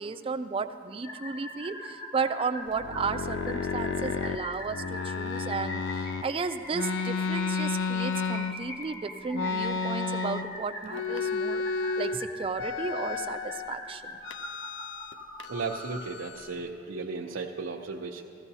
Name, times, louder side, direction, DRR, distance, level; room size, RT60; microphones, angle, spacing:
voice 1, 0.0-14.2, right 4 dB, 30° right, 10 dB, 0.3 m, -34 dB
sound 1, 1.0-16.0, left 1 dB, 85° left, 2.8 m, -42 dB
sound 2, 2.7-6.3 6.7-8.8 9.3-10.6 10.9-12.2 12.5-13.7 14.3-15.1 15.4-16.6, left 4 dB, 65° left, 0.4 m, -32 dB
voice 2, 15.5-18.2, right 4 dB, 85° right, -2 dB, 0.6 m, -35 dB
15.5 x 14.5 x 2.7 m, 2.4 s
head